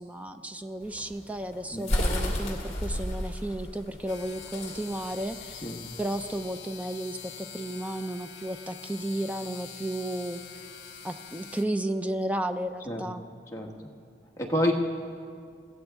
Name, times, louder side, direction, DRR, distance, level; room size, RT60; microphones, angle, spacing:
voice 1, 0.0-5.7 6.0-10.4 11.0-13.3, right 1 dB, 10° right, 9 dB, 0.4 m, -33 dB
sound 1, 0.8-6.4, left 1 dB, 35° left, 2.0 m, -32 dB
sound 2, 4.1-11.6, left 8 dB, 70° left, 1.1 m, -44 dB
voice 2, 14.4-14.7, left 1 dB, 15° left, -1 dB, 1.3 m, -27 dB
22.0 x 15.5 x 3.6 m, 2.2 s
head